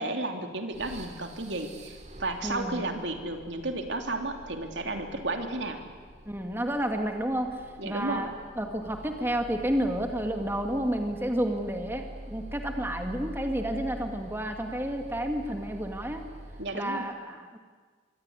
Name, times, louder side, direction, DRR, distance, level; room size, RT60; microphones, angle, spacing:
voice 1, 0.0-5.8 7.8-8.3 16.6-17.1, right 2 dB, 70° right, 5 dB, 3.1 m, -33 dB
sound 1, 0.7-16.9, equal, 35° right, 2.9 m, -45 dB
voice 2, 2.4-2.8 6.2-16.2 16.7-17.6, right 1 dB, 10° right, 4 dB, 1.8 m, -31 dB
26.0 x 23.5 x 9.7 m, 1.5 s
head